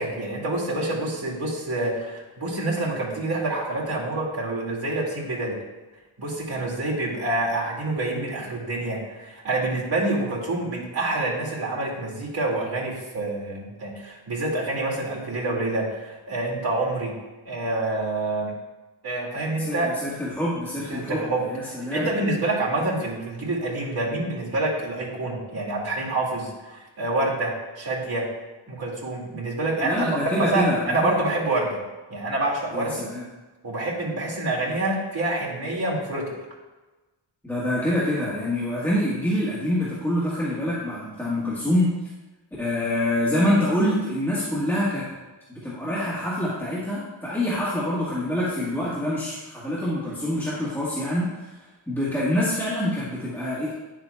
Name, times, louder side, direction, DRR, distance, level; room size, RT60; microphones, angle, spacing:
voice 1, 0.0-5.6 6.2-17.1 17.5-18.5 19.0-19.9 20.9-21.4 21.9-28.3 28.7-31.8 32.1-33.0 33.6-36.3, right 2 dB, 50° right, -5 dB, 2.3 m, -27 dB
voice 2, 19.6-22.1 29.8-31.2 32.7-33.2 37.4-41.9 42.6-45.0 45.5-53.7, left 1 dB, 5° left, -10 dB, 1.4 m, -26 dB
9.6 x 7.3 x 2.3 m, 1.2 s
wide cardioid pair, 170°, 47 cm